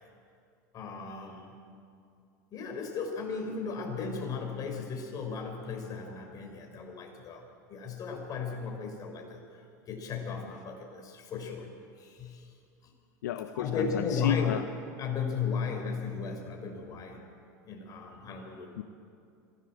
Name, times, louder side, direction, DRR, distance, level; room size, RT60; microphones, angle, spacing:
voice 1, 0.7-1.5 2.5-9.4 9.9-11.7 12.0-12.5 12.8-12.9 13.5-14.6 15.0-17.3 17.6-18.7, left 5 dB, 40° left, 3 dB, 5.8 m, -35 dB
voice 2, 13.2-14.6 18.8-18.9, left 10 dB, 80° left, 8 dB, 0.9 m, -32 dB
25.5 x 17.0 x 7.7 m, 2.5 s
hypercardioid pair, 90°, 9 cm